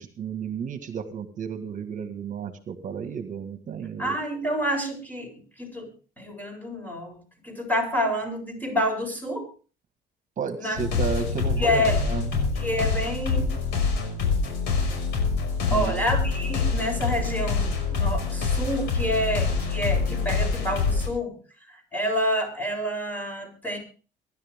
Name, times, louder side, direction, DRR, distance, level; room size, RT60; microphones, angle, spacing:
voice 1, 0.0-4.2 10.4-12.2 15.7-16.0, right 7 dB, 50° right, 8 dB, 1.8 m, -32 dB
voice 2, 4.0-5.9 6.2-9.5 10.6-10.8 11.6-12.0 12.6-13.5 15.7-21.3 21.7-23.8, equal, 10° left, 3 dB, 8.0 m, -28 dB
sound 1, 10.7-21.1, left 4 dB, 90° left, 5.8 m, -26 dB
23.5 x 11.5 x 3.6 m, 0.38 s
cardioid pair, 110°, 17 cm